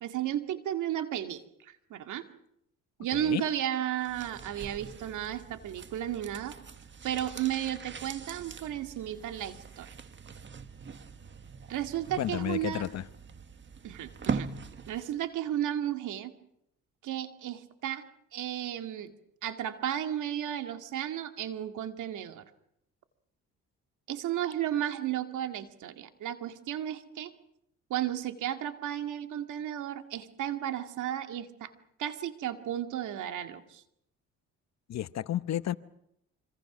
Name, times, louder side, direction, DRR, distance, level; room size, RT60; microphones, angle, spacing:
voice 1, 0.0-2.2 3.0-6.6 7.0-9.9 11.7-12.9 13.8-14.5 14.9-16.3 17.0-18.0 18.3-19.1 19.4-22.4 24.1-27.3 27.9-31.7 32.0-33.8, right 11 dB, 80° right, 7 dB, 2.2 m, -34 dB
voice 2, 3.1-3.5 12.2-13.0 34.9-35.7, left 11 dB, 60° left, 15 dB, 1.0 m, -32 dB
sound 1, 4.0-15.2 15.5-15.6, right 5 dB, 40° right, 1.6 m, -42 dB
26.0 x 25.5 x 6.1 m, 0.78 s
cardioid pair, 90°, 30 cm